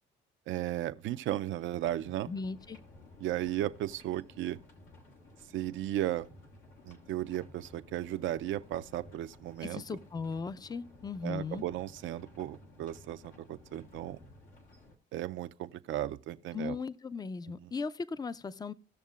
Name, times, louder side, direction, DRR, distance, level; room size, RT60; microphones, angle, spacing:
voice 1, 0.5-2.3 3.2-4.6 5.5-6.3 6.8-9.8 11.2-14.2 15.1-16.8 17.6-17.7, right 13 dB, 80° right, 0.5 m, -35 dB
sound 1, 1.8-15.0, left 1 dB, 85° left, 1.5 m, -55 dB
voice 2, 2.3-2.8 9.6-11.6 16.5-18.7, left 4 dB, 20° left, 0.4 m, -37 dB
17.5 x 6.4 x 2.4 m
cardioid pair, 90°, 20 cm